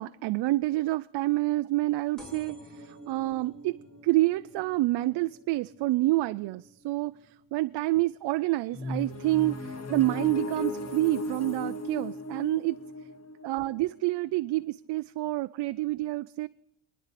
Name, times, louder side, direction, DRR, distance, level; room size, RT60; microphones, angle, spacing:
voice 1, 0.0-3.8 4.0-12.8 13.4-16.5, right 18 dB, 65° right, 0.5 m, -28 dB
sound 1, 2.2-9.4 9.9-10.3 11.2-11.3 11.5-11.6 11.8-11.9, equal, ahead, 4.9 m, -52 dB
sound 2, 8.7-14.5, left 1 dB, 35° left, 1.7 m, -36 dB
28.5 x 10.5 x 4.2 m
cardioid pair, 100°, 45 cm